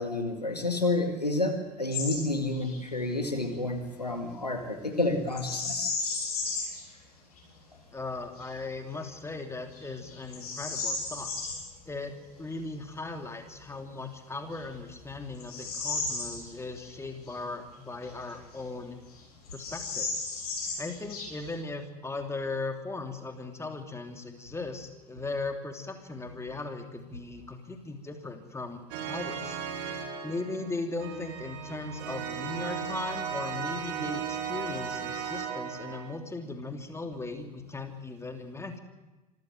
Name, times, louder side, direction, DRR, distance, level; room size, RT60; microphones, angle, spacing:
voice 1, 0.0-5.9, left 2 dB, 90° left, 5 dB, 2.1 m, -30 dB
Bird vocalization bird call bird song, 1.9-2.2 2.5-2.8 5.3-6.8 7.4-7.5 8.1-8.5 9.0-9.2 9.7-11.6 13.7-13.8 14.5-16.9 17.2-17.3 18.0-18.8 19.1-19.2 19.5-21.6, left 4 dB, 70° left, 7.7 m, -34 dB
voice 2, 7.9-11.3 11.9-19.0 19.5-20.1 20.8-28.8 29.1-29.6 30.2-38.8, left 3 dB, 15° left, 5 dB, 3.0 m, -38 dB
sound 1, 28.9-36.2, right 7 dB, 55° right, 2.7 m, -36 dB
26.0 x 15.0 x 7.8 m, 1.1 s
figure-of-eight pair, 70°, 20 cm